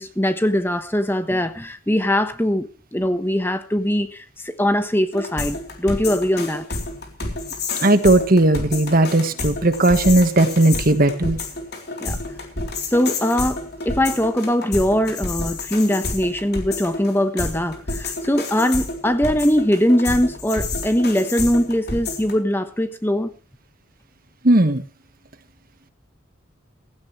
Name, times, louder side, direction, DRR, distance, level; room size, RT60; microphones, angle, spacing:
voice 1, 0.0-6.6 12.0-12.2 12.9-23.3, equal, 10° left, 1.1 m, -21 dB
sound 1, 5.1-22.3, left 3 dB, 55° left, 3.7 m, -29 dB
voice 2, 7.8-11.4 24.4-24.8, right 1 dB, 45° right, 1.4 m, -16 dB
16.5 x 15.5 x 3.2 m
head